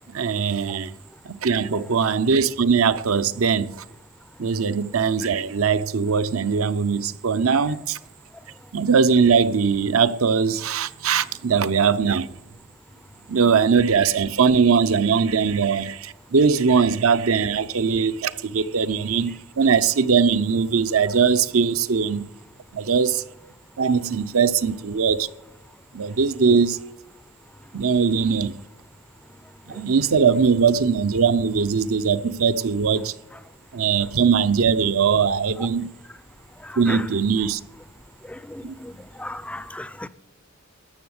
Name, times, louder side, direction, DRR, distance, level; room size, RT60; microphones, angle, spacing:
voice 1, 0.1-0.9 1.2-3.8 4.4-8.0 8.7-12.3 13.3-22.3 22.7-23.2 23.8-25.3 25.9-26.8 27.7-28.5 29.7-33.1 33.7-35.9 36.8-37.6 38.6-38.7, right 6 dB, 75° right, 0.6 m, -20 dB
voice 2, 36.6-37.1 38.3-38.9 39.2-40.1, left 1 dB, 5° left, 0.4 m, -35 dB
13.0 x 7.1 x 9.5 m
head